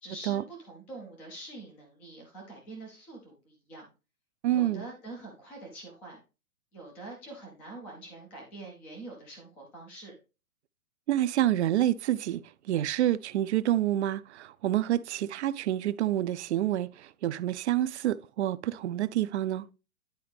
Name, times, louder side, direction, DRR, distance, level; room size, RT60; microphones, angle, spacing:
voice 1, 0.0-3.8 4.5-6.2 6.7-10.1, right 2 dB, 5° left, 0.4 m, -45 dB
voice 2, 4.4-4.9 11.1-19.6, right 13 dB, 50° right, 0.5 m, -28 dB
10.5 x 3.9 x 3.4 m
hypercardioid pair, 150°, 43 cm